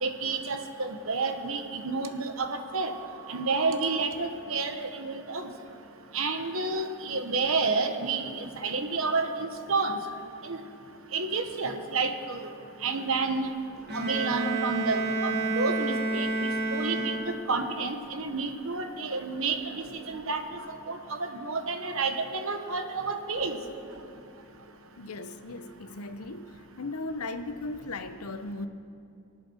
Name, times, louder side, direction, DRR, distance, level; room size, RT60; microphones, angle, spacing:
voice 1, 0.0-3.0 3.3-5.5 6.1-10.0 10.5-10.6 11.1-12.5 12.8-13.5 13.9-20.4 20.7-23.6, right 4 dB, 70° right, 1.2 m, -30 dB
sound 1, 13.8-14.0 15.5-15.9 16.2-17.1 19.6-20.3 23.2-24.2, equal, ahead, 4.2 m, -52 dB
Bowed string instrument, 13.9-17.7, right 2 dB, 45° right, 2.2 m, -30 dB
voice 2, 25.0-28.7, left 2 dB, 90° left, 0.8 m, -37 dB
23.0 x 8.6 x 6.3 m
head